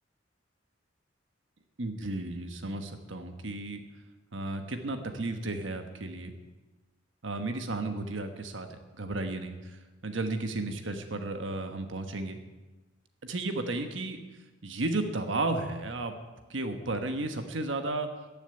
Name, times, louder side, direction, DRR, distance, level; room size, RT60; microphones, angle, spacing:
voice 1, 1.8-3.8 4.3-6.3 7.2-12.4 13.2-14.2 14.6-16.2 16.5-18.1, right 2 dB, 70° right, 7 dB, 1.2 m, -33 dB
14.5 x 7.2 x 10.0 m, 1.2 s
head